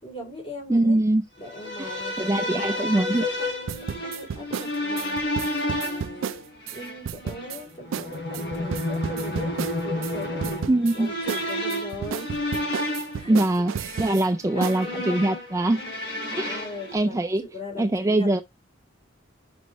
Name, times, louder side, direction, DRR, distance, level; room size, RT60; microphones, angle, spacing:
voice 1, 0.0-1.0 1.4-3.1 3.4-5.2 5.6-6.4 6.7-10.7 10.9-12.3 13.1-13.4 14.1-15.3 16.3-18.4, left 1 dB, 30° left, 3.3 m, -39 dB
voice 2, 0.7-1.2 1.8-3.2 10.7-11.1 13.3-15.8 16.4-16.6 16.9-17.4 17.8-18.4, right 1 dB, 15° right, 0.3 m, -23 dB
sound 1, 1.4-17.0, left 1 dB, 60° left, 3.8 m, -31 dB
sound 2, 3.7-6.8 7.0-7.6 7.9-8.1 8.3-10.1 10.4-10.9 11.3-14.2 14.6-14.8, right 7 dB, 85° right, 0.4 m, -32 dB
6.2 x 5.2 x 3.0 m
head